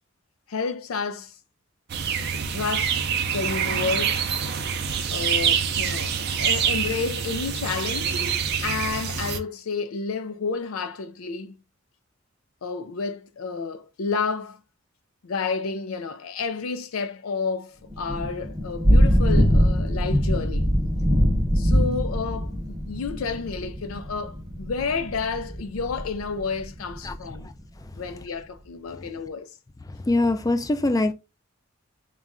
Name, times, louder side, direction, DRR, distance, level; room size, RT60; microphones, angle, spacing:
voice 1, 0.5-1.3 2.3-3.0 3.3-4.2 5.1-8.2 8.6-11.5 12.6-14.6 15.2-20.7 21.6-27.5 28.0-29.5, left 4 dB, 85° left, 0.5 m, -30 dB
sound 1, 1.9-9.4, right 7 dB, 50° right, 0.5 m, -26 dB
Thunder / Rain, 17.9-27.4, equal, 20° right, 0.7 m, -23 dB
voice 2, 30.1-31.1, left 2 dB, 15° left, 0.3 m, -22 dB
4.1 x 2.4 x 3.6 m
head